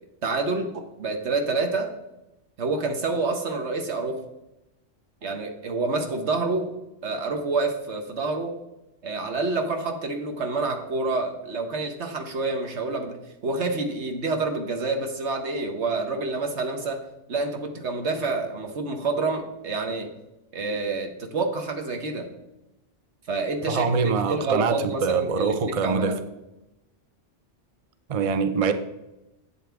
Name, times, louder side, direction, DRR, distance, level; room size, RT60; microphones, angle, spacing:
voice 1, 0.2-1.9 2.6-4.2 5.2-6.7 7.0-8.5 9.0-13.2 13.4-17.0 17.3-20.1 20.5-22.3 23.3-25.6 25.8-26.3, right 3 dB, 70° right, 4 dB, 1.5 m, -28 dB
voice 2, 23.7-26.2 28.1-28.7, right 5 dB, 40° right, 9 dB, 0.6 m, -24 dB
11.5 x 8.0 x 3.5 m, 0.95 s
omnidirectional pair, 1.2 m